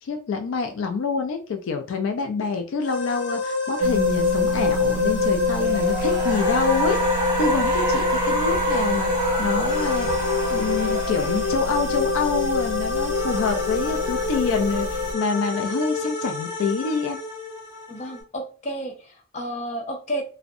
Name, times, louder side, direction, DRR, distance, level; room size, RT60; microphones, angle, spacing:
voice 1, 0.0-17.2, left 5 dB, 75° left, 5 dB, 0.3 m, -27 dB
sound 1, 2.8-18.2, left 2 dB, 60° left, 0.9 m, -29 dB
sound 2, 3.8-15.1, left 4 dB, 85° right, 0.3 m, -25 dB
Cheering / Applause, 5.5-12.2, right 2 dB, 10° right, 1.2 m, -29 dB
voice 2, 17.9-20.2, equal, 35° left, 1 dB, 0.6 m, -31 dB
2.4 x 2.1 x 2.6 m, 0.38 s
head